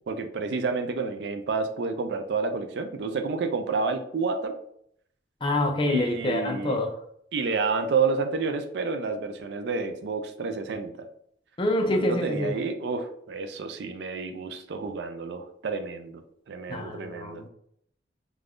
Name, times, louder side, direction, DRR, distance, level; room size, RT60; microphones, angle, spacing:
voice 1, 0.0-4.5 5.9-6.8 7.3-11.1 11.8-17.4, right 4 dB, 65° right, 7 dB, 0.4 m, -30 dB
voice 2, 5.4-6.9 11.6-12.5 16.7-17.5, left 1 dB, 30° left, 4 dB, 0.4 m, -26 dB
2.5 x 2.2 x 3.4 m, 0.68 s
head